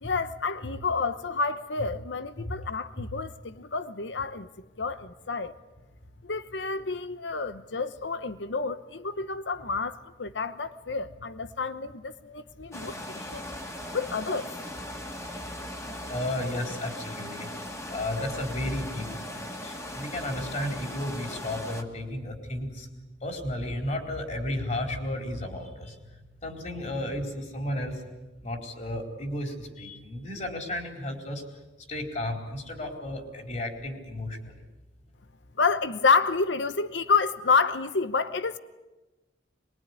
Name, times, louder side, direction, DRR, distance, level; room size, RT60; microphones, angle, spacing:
voice 1, 0.0-4.5 4.8-5.5 6.2-13.5 13.9-14.5 35.6-38.6, left 4 dB, 90° left, 1.0 m, -29 dB
sound 1, 12.7-21.8, left 1 dB, 15° left, 2.1 m, -39 dB
voice 2, 16.1-17.5 17.9-22.9 23.2-26.0 26.4-28.0 28.4-31.4 31.9-34.6, left 1 dB, 40° left, 4.4 m, -33 dB
24.0 x 22.0 x 9.8 m
head